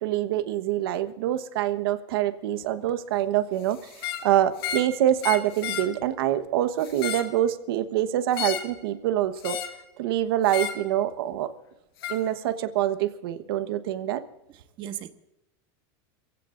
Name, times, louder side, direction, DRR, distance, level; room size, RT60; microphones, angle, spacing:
voice 1, 0.0-9.6 10.0-11.5 12.1-14.2, right 12 dB, 80° right, 1.3 m, -25 dB
sound 1, 3.9-4.3 4.6-4.9 5.2-5.9 6.8-7.3 8.3-8.7 9.4-9.8 10.5-10.8 12.0-12.2, left 9 dB, 90° left, 2.0 m, -32 dB
voice 2, 14.5-15.1, right 11 dB, 40° right, 1.3 m, -37 dB
29.0 x 16.0 x 2.6 m
supercardioid pair, 145°, 12 cm